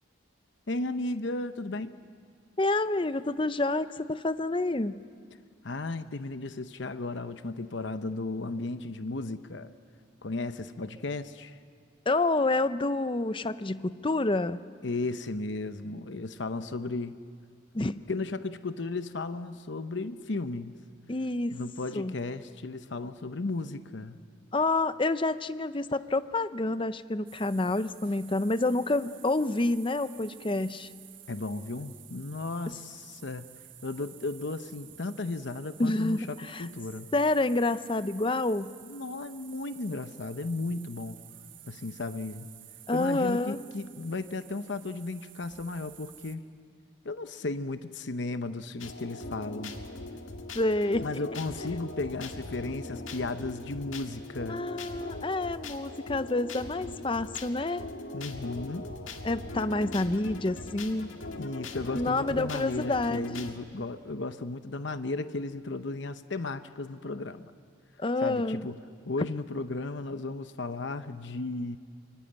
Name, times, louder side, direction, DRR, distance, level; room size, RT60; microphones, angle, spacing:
voice 1, 0.7-2.0 5.6-9.7 10.2-11.6 14.8-17.2 17.9-20.8 21.5-24.2 31.3-33.5 33.8-37.1 38.8-41.2 41.7-42.5 42.9-46.4 47.0-49.8 51.0-54.7 58.1-58.9 61.4-67.5 68.2-68.8 69.1-71.8, left 2 dB, 65° left, 11 dB, 0.8 m, -35 dB
voice 2, 2.6-5.0 12.1-14.6 17.7-17.9 21.1-21.6 22.0-22.1 24.5-30.9 32.7-32.8 35.8-36.7 37.1-38.7 42.9-43.6 50.5-51.1 54.5-57.8 59.2-61.1 61.9-63.2 68.0-68.6, left 2 dB, 25° left, 13 dB, 0.6 m, -28 dB
sound 1, 27.3-46.4, right 13 dB, 75° right, 1.4 m, -52 dB
sound 2, 48.8-63.5, left 2 dB, 90° left, 1.9 m, -41 dB
24.0 x 24.0 x 8.8 m, 2.1 s
head